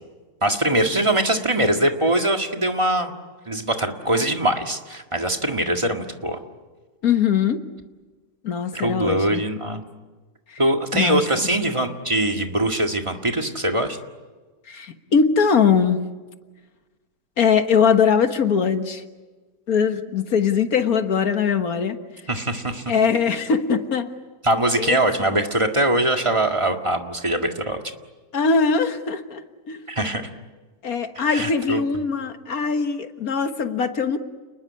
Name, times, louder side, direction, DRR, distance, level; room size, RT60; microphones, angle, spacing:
voice 1, 0.4-3.1 3.5-6.4 8.7-9.8 10.6-14.0 22.3-22.9 24.4-27.8 29.9-30.3 31.3-31.8, right 1 dB, 20° right, 4 dB, 1.9 m, -22 dB
voice 2, 7.0-7.6 8.4-9.4 10.5-10.6 10.9-11.2 14.7-16.0 17.4-19.0 19.7-22.0 22.9-24.1 24.8-25.3 28.3-29.8 30.8-34.2, left 6 dB, 60° left, 8 dB, 1.9 m, -21 dB
29.5 x 20.0 x 9.7 m, 1.3 s
omnidirectional pair, 1.7 m